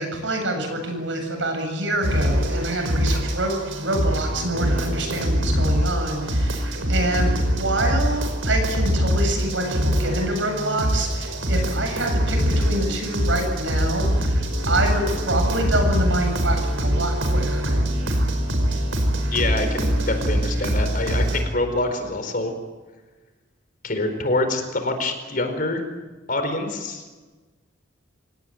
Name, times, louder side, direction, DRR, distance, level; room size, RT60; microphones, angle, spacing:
voice 1, 0.0-17.8, right 1 dB, 70° right, 5 dB, 7.9 m, -26 dB
sound 1, 2.0-21.4, equal, 90° right, 5.1 m, -23 dB
voice 2, 19.3-22.5 23.8-25.8 26.3-27.0, left 2 dB, 45° left, 7 dB, 4.5 m, -25 dB
27.0 x 19.0 x 9.3 m, 1.3 s
head